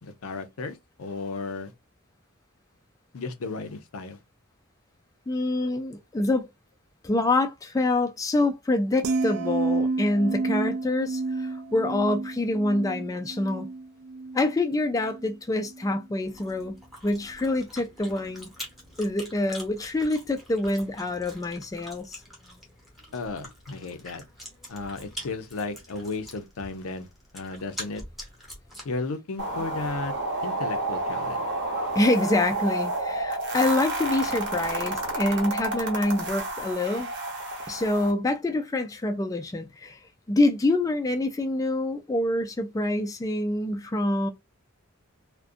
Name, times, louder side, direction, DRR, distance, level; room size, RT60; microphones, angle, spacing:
voice 1, 0.0-1.7 3.1-4.2 23.1-24.2 24.7-27.1 27.3-28.0 28.8-30.1 30.4-31.4 31.8-31.9, left 3 dB, 80° left, 0.5 m, -34 dB
voice 2, 5.3-6.5 7.0-13.7 14.3-16.8 17.0-18.5 19.0-22.2 32.0-37.1 37.7-40.0 40.3-44.3, left 2 dB, 15° left, 0.3 m, -26 dB
sound 1, 9.0-15.3 15.7-16.0, right 3 dB, 75° right, 0.4 m, -30 dB
Chewing mastication, 16.2-29.0, equal, ahead, 0.9 m, -45 dB
sound 2, 29.4-38.1, right 2 dB, 55° right, 0.8 m, -30 dB
2.4 x 2.2 x 2.4 m
head